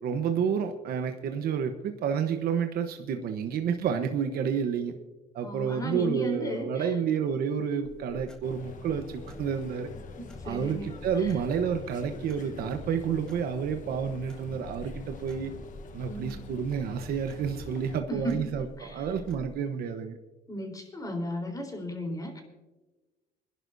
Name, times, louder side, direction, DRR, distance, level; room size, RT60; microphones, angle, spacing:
voice 1, 0.0-4.9 5.3-9.9 10.4-15.5 15.9-18.6 18.9-20.2, right 7 dB, 65° right, 6 dB, 1.1 m, -30 dB
voice 2, 5.4-7.0 10.2-11.3 16.1-16.4 18.1-19.1 20.5-22.4, equal, 20° left, 3 dB, 3.9 m, -35 dB
sound 1, 7.8-19.6, equal, 5° left, 1.6 m, -49 dB
sound 2, 8.4-18.0, left 4 dB, 50° left, 1.2 m, -45 dB
26.0 x 11.0 x 2.7 m, 1.2 s
cardioid pair, 110°, 17 cm